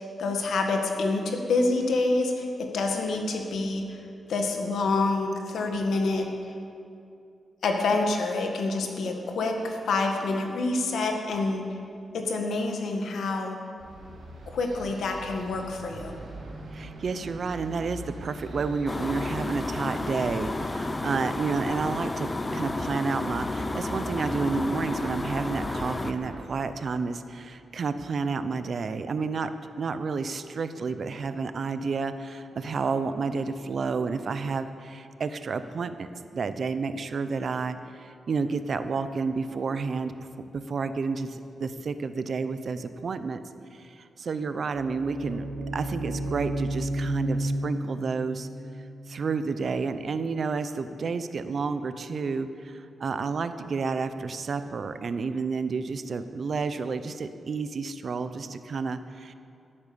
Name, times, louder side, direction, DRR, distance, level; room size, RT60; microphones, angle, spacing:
voice 1, 0.2-4.0 4.3-6.3 7.6-11.8 12.1-13.6 14.5-16.1, left 3 dB, 90° left, 3 dB, 1.8 m, -27 dB
sound 1, 13.8-26.5, right 1 dB, 80° right, 3.3 m, -41 dB
voice 2, 16.7-29.5 29.8-40.1 40.5-43.4 43.7-45.5 45.7-48.5 49.1-59.3, right 4 dB, 55° right, 11 dB, 0.7 m, -30 dB
sound 2, 18.9-26.1, left 2 dB, 20° left, 0.6 m, -32 dB
sound 3, 44.6-50.3, right 1 dB, 35° right, 1.7 m, -33 dB
17.0 x 8.7 x 6.9 m, 2.5 s
wide cardioid pair, 125°, 0 cm